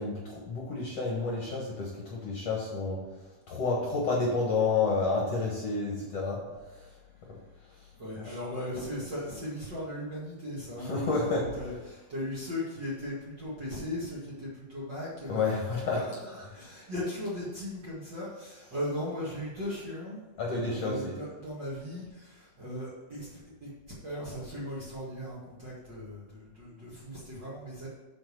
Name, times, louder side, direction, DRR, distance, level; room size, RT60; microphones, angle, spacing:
voice 1, 0.0-3.0 3.5-6.4 7.3-7.4 8.2-8.4 10.8-11.4 15.3-16.0 20.4-21.2, left 4 dB, 55° left, -3 dB, 1.9 m, -30 dB
voice 2, 8.0-15.4 16.2-20.2 20.5-23.7 24.0-27.9, left 1 dB, 40° right, -7 dB, 1.9 m, -38 dB
7.1 x 5.6 x 6.6 m, 1.2 s
omnidirectional pair, 4.3 m